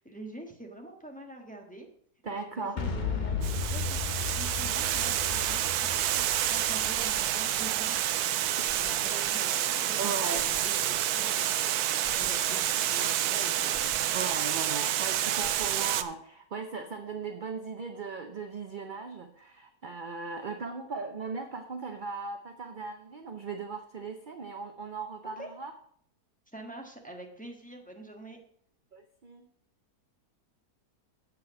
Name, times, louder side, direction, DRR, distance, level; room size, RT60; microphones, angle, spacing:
voice 1, 0.0-1.9 2.3-4.0 4.3-8.1 8.8-14.0 25.4-25.5 26.5-28.4, right 2 dB, 5° left, 1 dB, 1.2 m, -46 dB
voice 2, 2.2-2.8 10.0-10.5 14.1-25.7 28.9-29.4, right 4 dB, 50° right, 5 dB, 0.6 m, -38 dB
Boom, 2.8-8.6, left 5 dB, 35° left, 0.9 m, -35 dB
Water, 3.4-16.0, right 11 dB, 75° right, 1.1 m, -28 dB
sound 1, 3.6-4.3 5.3-6.0 7.0-7.7 8.7-9.4 10.3-11.0 12.0-12.7 13.7-14.4 15.4-16.1, right 2 dB, 25° right, 2.0 m, -51 dB
8.1 x 7.0 x 5.8 m, 0.63 s
omnidirectional pair, 1.7 m